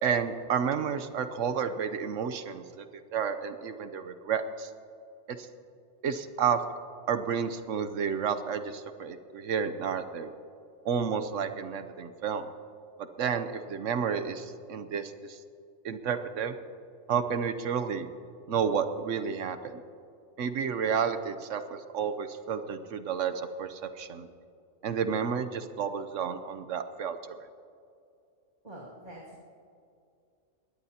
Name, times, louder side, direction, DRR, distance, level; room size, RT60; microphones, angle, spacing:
voice 1, 0.0-4.7 5.3-5.5 6.0-6.6 7.1-10.3 10.8-12.4 13.0-15.4 15.8-16.6 17.1-18.1 18.5-19.8 20.4-24.3 24.8-27.2, right 7 dB, 80° right, 9 dB, 1.1 m, -31 dB
voice 2, 28.6-29.4, right 1 dB, 35° right, -6 dB, 2.4 m, -45 dB
21.5 x 17.5 x 2.9 m, 2.4 s
omnidirectional pair, 1.3 m